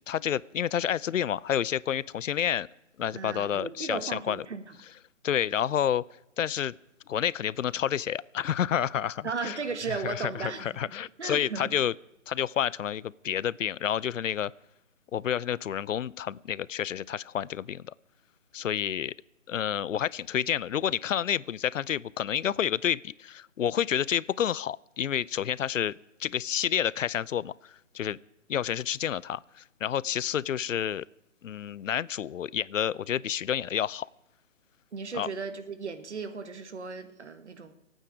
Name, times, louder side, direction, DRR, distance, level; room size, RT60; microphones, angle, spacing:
voice 1, 0.0-2.7 3.0-4.4 5.2-6.0 6.4-6.7 7.1-9.6 10.0-11.9 12.3-14.5 15.1-17.9 18.5-19.1 19.5-25.9 26.2-28.2 28.5-31.0 31.4-34.1 35.2-35.3, left 9 dB, 85° left, 23 dB, 0.5 m, -29 dB
voice 2, 3.1-4.8 9.2-10.7 11.2-11.7 34.9-37.7, right 5 dB, 65° right, 10 dB, 1.6 m, -36 dB
26.5 x 9.0 x 4.9 m, 0.88 s
hypercardioid pair, 170°, 37 cm